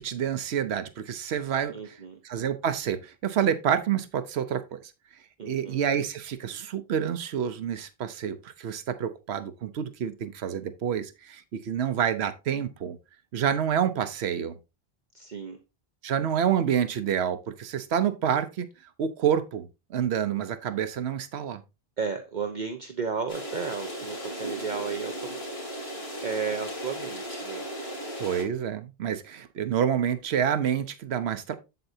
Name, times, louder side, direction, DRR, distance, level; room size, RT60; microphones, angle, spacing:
voice 1, 0.0-4.8 5.4-13.0 13.3-14.6 16.0-18.7 19.0-21.6 28.2-31.5, right 8 dB, 85° right, 1.0 m, -28 dB
voice 2, 1.7-2.2 5.4-5.8 15.1-15.6 22.0-25.4 25.7-27.6, right 5 dB, 50° right, 1.0 m, -34 dB
sound 1, 23.3-28.4, right 1 dB, 55° left, 2.9 m, -36 dB
8.0 x 7.8 x 2.7 m
omnidirectional pair, 1.1 m